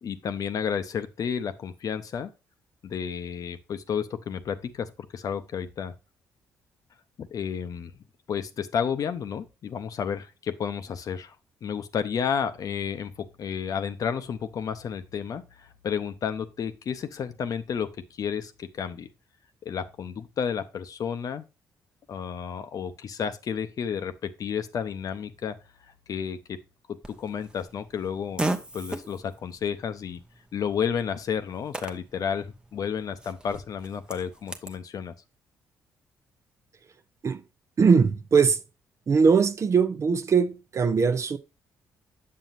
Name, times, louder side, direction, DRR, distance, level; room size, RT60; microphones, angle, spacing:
voice 1, 0.0-2.3 2.8-5.9 7.2-7.9 8.3-11.4 11.6-17.9 18.2-19.1 19.6-21.4 22.1-25.6 26.1-26.6 26.9-28.4 28.7-30.2 30.5-35.1, left 7 dB, 60° left, 0.7 m, -31 dB
Fart, 27.0-34.8, right 2 dB, 10° right, 0.8 m, -38 dB
voice 2, 37.8-38.6 39.1-41.4, right 5 dB, 45° right, 0.7 m, -21 dB
7.5 x 6.9 x 2.5 m
supercardioid pair, 70°, 7 cm